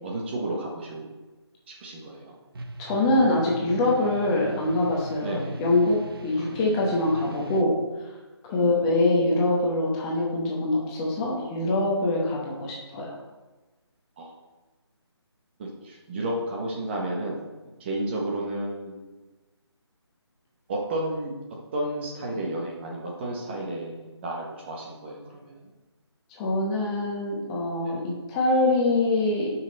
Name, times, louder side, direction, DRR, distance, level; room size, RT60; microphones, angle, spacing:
voice 1, 0.0-1.1 1.7-2.3 5.2-5.6 6.4-6.5 8.5-8.9 14.2-14.3 15.6-17.4 17.8-19.1 20.7-21.3 21.7-25.7 27.8-28.0, right 1 dB, 25° right, -2 dB, 1.2 m, -32 dB
sound 1, 2.5-7.6, right 1 dB, 55° right, 0.9 m, -39 dB
voice 2, 2.8-7.8 8.4-13.1 26.4-29.5, left 2 dB, 15° left, -3 dB, 1.2 m, -24 dB
8.8 x 5.8 x 4.1 m, 1.2 s
figure-of-eight pair, 160°, 15 cm